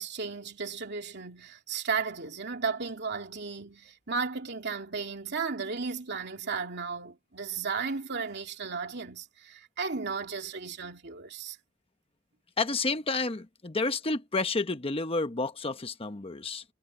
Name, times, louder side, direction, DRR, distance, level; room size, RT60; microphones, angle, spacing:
voice 1, 0.0-11.6, right 5 dB, 55° right, 2.9 m, -34 dB
voice 2, 12.6-16.6, left 3 dB, 30° left, 1.0 m, -30 dB
head